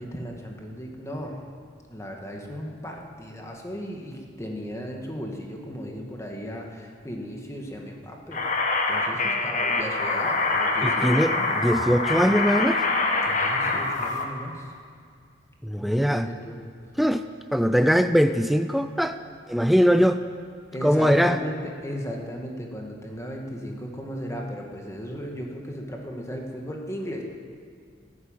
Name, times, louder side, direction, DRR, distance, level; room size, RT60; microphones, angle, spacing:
voice 1, 0.0-1.4 1.9-8.5 8.9-11.6 13.2-14.7 15.8-16.6 20.7-27.2, equal, 15° left, 1 dB, 1.9 m, -36 dB
sound 1, 8.3-14.2, left 3 dB, 45° left, 1.6 m, -25 dB
voice 2, 10.8-12.8 15.6-16.3 17.0-17.2 17.5-19.2 19.5-20.2 20.8-21.4, equal, ahead, 9 dB, 0.4 m, -21 dB
14.0 x 11.5 x 9.0 m, 2.2 s
head